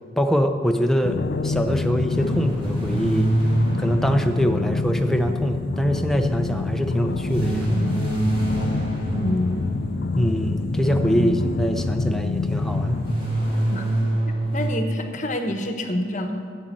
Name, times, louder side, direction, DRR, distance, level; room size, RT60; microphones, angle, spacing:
voice 1, 0.2-3.3 3.8-7.8 10.1-13.1, equal, ahead, 4 dB, 0.6 m, -23 dB
sound 1, 1.0-13.1, left 3 dB, 55° left, 0.4 m, -27 dB
sound 2, 2.1-5.6 7.2-10.4 12.5-14.7, right 1 dB, 25° right, 2.4 m, -26 dB
voice 2, 9.1-9.7 11.1-11.4 13.7-13.8 14.5-16.5, left 1 dB, 40° left, 5 dB, 1.0 m, -27 dB
9.4 x 7.4 x 8.8 m, 2.1 s
head